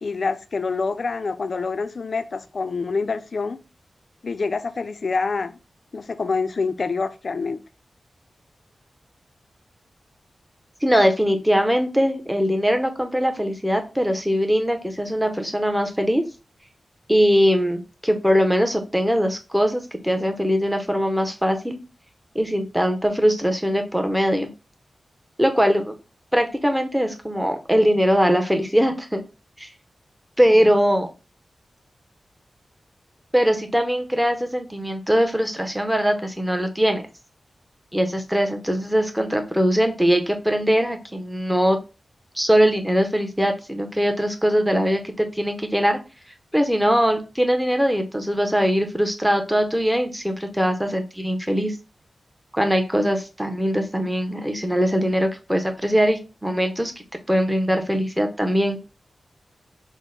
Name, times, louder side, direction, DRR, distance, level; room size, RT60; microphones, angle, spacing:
voice 1, 0.0-3.6 4.2-5.6 5.9-7.6, left 4 dB, 60° left, 0.4 m, -26 dB
voice 2, 10.8-16.2 17.1-21.8 22.3-24.5 25.4-25.9 26.3-29.2 29.6-29.7 30.4-31.1 33.3-37.1 37.9-41.8 42.4-46.0 46.5-51.8 52.5-56.9 57.3-58.8, equal, 5° right, 0.7 m, -21 dB
6.1 x 2.1 x 3.8 m
wide cardioid pair, 95°, 0 cm